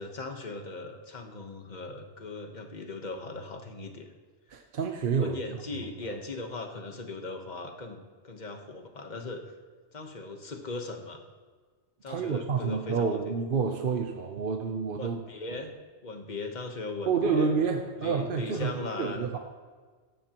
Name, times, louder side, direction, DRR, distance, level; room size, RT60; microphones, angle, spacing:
voice 1, 0.0-4.1 5.2-9.5 9.9-11.2 12.0-13.2 15.0-15.7 16.0-17.5 18.0-19.3, left 3 dB, 40° left, 4 dB, 1.3 m, -39 dB
voice 2, 4.5-5.4 5.7-6.2 12.1-15.2 17.1-19.4, right 5 dB, 55° right, 4 dB, 0.9 m, -29 dB
17.0 x 14.5 x 3.0 m, 1.5 s
omnidirectional pair, 1.2 m